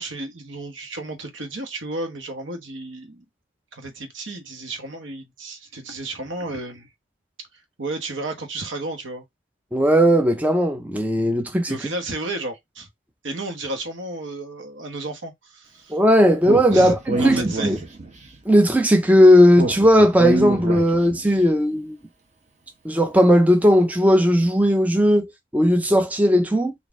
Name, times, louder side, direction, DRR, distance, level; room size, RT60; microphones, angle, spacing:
voice 1, 0.0-3.2 3.7-6.9 7.8-9.2 11.7-12.9 13.2-15.9 16.7-17.8, right 2 dB, 70° right, 1.1 m, -32 dB
voice 2, 9.7-11.8 15.9-17.8 18.5-22.0 22.8-26.7, equal, 10° right, 0.3 m, -17 dB
Speech, 16.4-18.3 19.5-21.3, right 2 dB, 35° right, 0.8 m, -26 dB
4.0 x 2.4 x 3.5 m
head